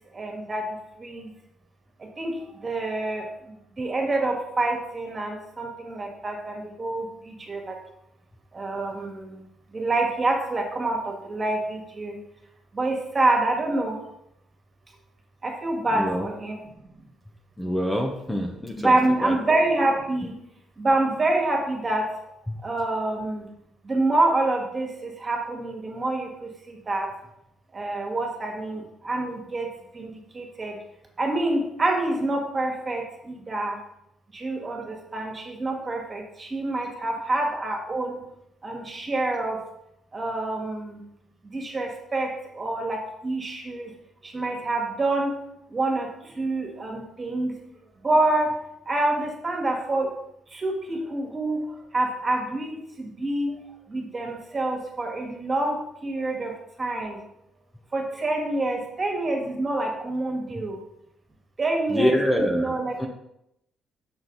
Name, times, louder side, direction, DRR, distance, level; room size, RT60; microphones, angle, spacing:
voice 1, 0.1-0.7 1.0-1.3 2.2-3.3 3.8-7.7 8.5-9.4 9.7-12.2 12.7-14.0 15.4-16.6 18.8-20.3 20.8-22.1 22.6-23.5 23.8-27.1 27.7-29.7 29.9-30.8 31.2-33.8 34.3-38.2 38.6-39.6 40.1-41.0 41.5-43.9 44.2-45.3 45.7-46.1 46.4-47.6 48.0-48.6 48.9-50.2 50.5-51.7 51.9-53.6 53.9-56.5 56.8-57.2 57.9-60.8 61.6-63.1, right 2 dB, 30° right, 1 dB, 1.9 m, -27 dB
voice 2, 15.9-16.3 17.6-19.0 19.2-19.3 22.5-22.6 61.9-62.7 63.0-63.1, equal, 10° left, 1 dB, 0.9 m, -25 dB
6.4 x 6.1 x 4.0 m, 0.80 s
cardioid pair, 90°, 0 cm